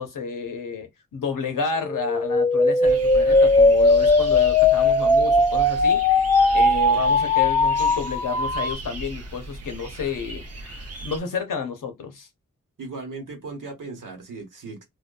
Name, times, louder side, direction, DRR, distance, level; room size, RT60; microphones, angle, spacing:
voice 1, 0.0-6.0 6.5-12.3, left 6 dB, 90° left, 0.8 m, -30 dB
sound 1, 1.8-8.7, left 2 dB, 15° left, 0.4 m, -19 dB
sound 2, 2.8-11.2, right 2 dB, 50° right, 0.6 m, -37 dB
voice 2, 12.8-14.8, right 3 dB, 80° right, 1.1 m, -37 dB
2.6 x 2.1 x 2.3 m
cardioid pair, 45°, 31 cm